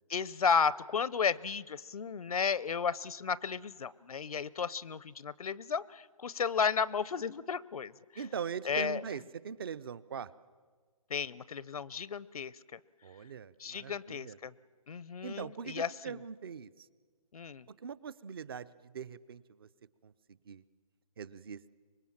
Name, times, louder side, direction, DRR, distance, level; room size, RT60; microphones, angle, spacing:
voice 1, 0.1-7.9 8.6-9.0 11.1-12.8 13.6-14.5 14.9-16.2 17.3-17.7, left 6 dB, 70° left, 21 dB, 0.6 m, -33 dB
voice 2, 8.2-10.3 13.0-14.4 15.2-16.9 17.8-19.7 20.0-20.1 20.5-20.6 21.2-21.8, right 7 dB, 40° right, 19 dB, 0.6 m, -42 dB
25.0 x 21.0 x 7.3 m, 1.5 s
hypercardioid pair, 155°, 19 cm